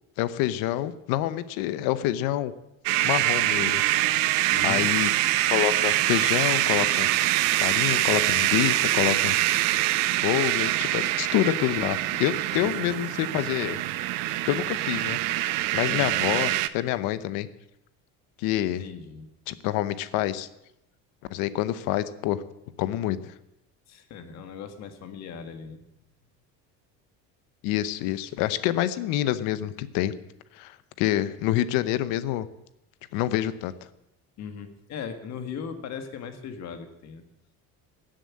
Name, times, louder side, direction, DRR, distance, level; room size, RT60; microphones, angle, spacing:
voice 1, 0.2-2.5 3.0-4.2 4.6-5.1 5.5-7.1 7.6-9.4 10.2-13.8 14.5-15.2 15.7-17.5 18.4-18.8 19.5-20.5 21.3-22.4 22.8-23.3 27.6-30.1 30.5-32.5 33.1-33.7, left 13 dB, 80° left, 14 dB, 0.9 m, -27 dB
sound 1, 2.9-16.7, right 15 dB, 75° right, 0.8 m, -24 dB
voice 2, 4.5-4.9 12.6-12.9 15.9-16.1 18.8-19.3 23.9-25.8 34.4-37.2, left 6 dB, 50° left, 7 dB, 1.7 m, -38 dB
15.0 x 7.7 x 8.5 m, 0.88 s
cardioid pair, 150°, 34 cm